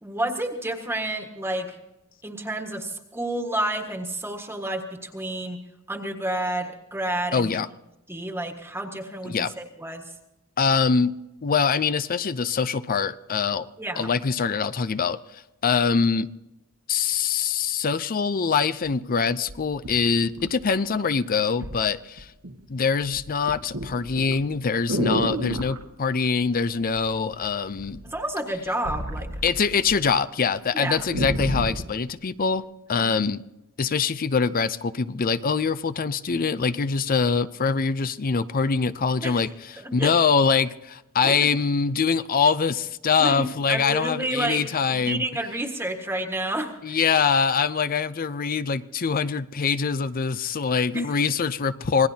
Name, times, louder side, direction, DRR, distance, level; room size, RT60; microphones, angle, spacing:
voice 1, 0.0-1.7 2.2-5.6 5.9-7.5 8.1-10.1 13.8-14.1 28.0-29.4 30.7-31.1 32.9-33.2 39.2-39.5 39.8-40.1 41.2-41.5 43.2-47.0 50.9-51.1, right 1 dB, 10° right, 1.5 m, -30 dB
voice 2, 7.3-7.7 9.3-9.5 10.6-11.1 11.4-13.7 14.0-16.3 16.9-22.3 22.7-28.0 29.4-32.6 32.9-33.4 33.8-39.5 39.9-45.2 46.8-52.1, left 5 dB, 40° left, 0.5 m, -24 dB
sound 1, 18.9-19.0 19.5-21.0 21.6-21.8 22.2-22.7 23.0-25.8 26.9-27.5 27.8-30.1 30.4-30.5 30.8-31.9 32.6-32.7, right 1 dB, 75° right, 1.6 m, -31 dB
26.5 x 19.0 x 2.8 m
head